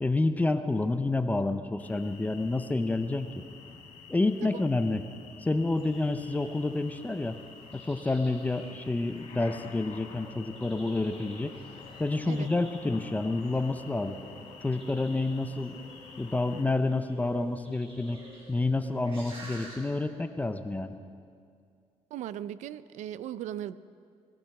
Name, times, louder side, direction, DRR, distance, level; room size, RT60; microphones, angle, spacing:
voice 1, 0.0-3.4 4.1-5.0 5.4-7.4 7.7-11.5 12.0-14.2 14.6-15.8 16.2-18.2 18.5-20.9, left 2 dB, 15° left, 8 dB, 0.6 m, -29 dB
sound 1, 1.8-16.6, left 5 dB, 85° left, 1.8 m, -49 dB
sound 2, 5.8-19.8, right 1 dB, 45° right, 5.1 m, -52 dB
voice 2, 22.1-23.8, right 11 dB, 80° right, 15 dB, 0.5 m, -38 dB
19.0 x 12.0 x 6.0 m, 2.3 s
cardioid pair, 120°, 12 cm